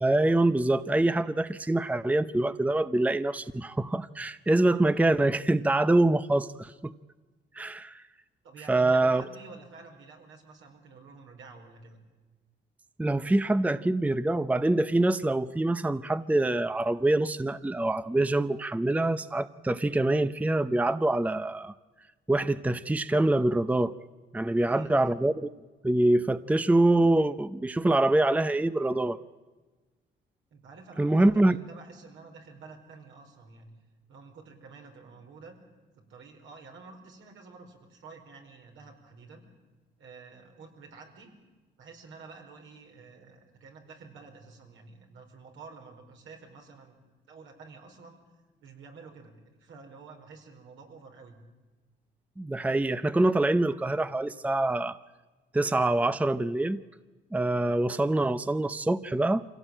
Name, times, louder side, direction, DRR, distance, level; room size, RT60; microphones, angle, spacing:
voice 1, 0.0-6.9 7.6-8.0 8.7-9.2 13.0-21.7 22.3-23.9 24.3-25.5 25.8-29.2 31.0-31.6 52.4-55.0 55.5-56.8 57.3-59.6, right 2 dB, 5° right, 14 dB, 0.6 m, -25 dB
voice 2, 8.4-12.0 24.6-25.0 30.5-33.7 34.1-35.6 36.0-39.4 40.0-41.3 41.8-47.0 47.3-48.2 48.6-51.4, right 4 dB, 75° right, 2 dB, 4.9 m, -49 dB
25.5 x 17.0 x 8.9 m, 1.3 s
cardioid pair, 90°, 20 cm